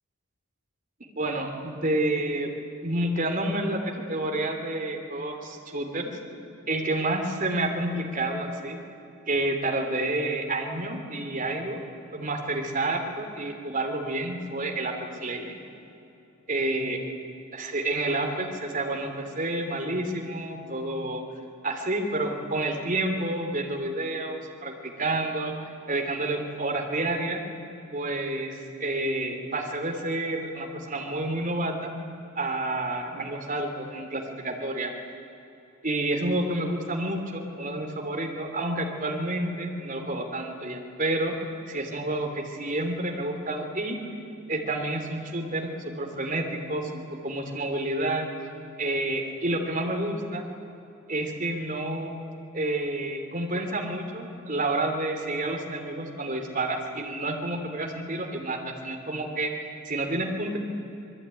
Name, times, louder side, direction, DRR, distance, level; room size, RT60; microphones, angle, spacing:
voice 1, 1.1-2.5 2.8-6.0 6.7-8.8 9.3-11.8 12.1-15.6 16.5-17.0 17.5-21.2 21.6-25.5 25.9-27.4 27.9-31.9 32.4-34.9 35.8-41.3 41.7-44.0 44.5-48.3 48.8-50.4 51.1-52.1 52.5-60.6, right 2 dB, 40° right, 2 dB, 3.0 m, -29 dB
27.0 x 21.0 x 9.9 m, 2.9 s
head